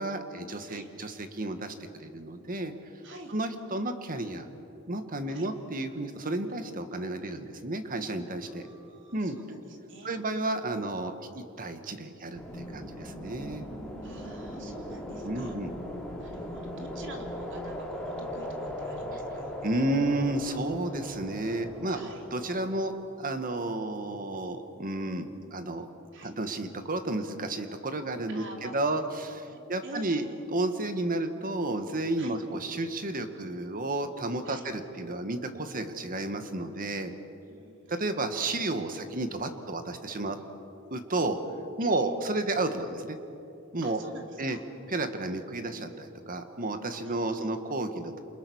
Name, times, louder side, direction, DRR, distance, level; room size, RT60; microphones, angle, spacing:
voice 1, 0.0-1.7 2.0-2.7 3.3-4.5 4.9-8.6 9.1-9.3 10.0-13.7 15.2-15.7 19.6-22.0 22.3-22.9 23.2-25.9 26.2-30.2 30.5-37.1 37.9-40.4 40.9-41.4 41.8-43.2 43.7-44.0 44.4-44.6 44.9-48.2, right 2 dB, 40° right, 7 dB, 1.8 m, -32 dB
voice 2, 3.0-3.3 5.3-5.5 8.4-10.1 14.0-15.6 16.2-19.7 21.8-22.3 26.1-26.3 28.3-29.0 29.4-30.5 32.2-32.4 34.4-34.7 37.5-38.2 41.8-42.1 43.8-44.6 47.0-47.5, right 2 dB, 60° right, 2 dB, 3.3 m, -48 dB
sound 1, 12.3-22.9, equal, 5° left, 3.8 m, -39 dB
29.0 x 27.5 x 6.5 m, 2.8 s
head